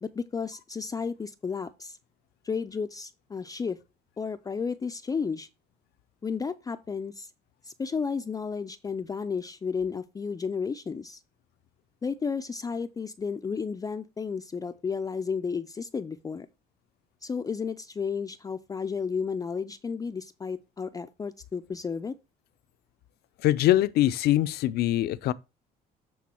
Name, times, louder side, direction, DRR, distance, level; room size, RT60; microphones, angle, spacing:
voice 1, 0.0-2.0 2.4-3.8 4.2-5.5 6.2-7.3 7.6-11.2 12.0-16.5 17.2-22.2, left 5 dB, 20° left, 0.4 m, -32 dB
voice 2, 23.4-25.3, left 14 dB, 70° left, 0.5 m, -23 dB
8.5 x 3.8 x 4.3 m
cardioid pair, 110°, 17 cm